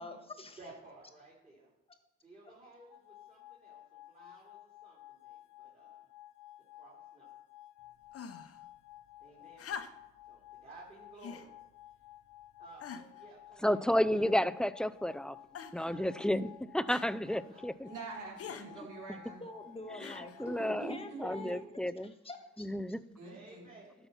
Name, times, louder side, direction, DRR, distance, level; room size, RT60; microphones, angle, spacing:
voice 1, 0.0-0.6 19.4-21.7 22.0-22.7, left 1 dB, 20° left, 6 dB, 1.5 m, -45 dB
voice 2, 0.6-1.7 2.2-6.1 6.7-7.3 9.2-9.7 10.2-11.5 12.6-13.8 15.8-16.3 16.9-17.6 18.7-18.8 20.5-20.9 23.2-23.9, right 2 dB, 25° right, -5 dB, 3.3 m, -56 dB
sound 1, 2.9-21.4, left 15 dB, 85° left, 0.7 m, -55 dB
sound 2, 8.1-8.6 9.6-10.2 11.2-11.5 12.2-12.3 12.8-13.2 14.1-14.6 15.5-15.9 16.9-17.1 18.4-18.7 20.0-20.4 21.5-21.6, left 7 dB, 50° left, 0.9 m, -45 dB
voice 3, 13.6-15.4 15.7-16.5 16.7-17.9 20.0-22.1 22.6-23.0, equal, 5° left, 16 dB, 0.3 m, -32 dB
voice 4, 17.8-19.4 20.4-21.5 23.2-23.7, right 3 dB, 80° right, -3 dB, 3.6 m, -45 dB
12.5 x 5.9 x 5.6 m, 0.97 s
cardioid pair, 90°, 30 cm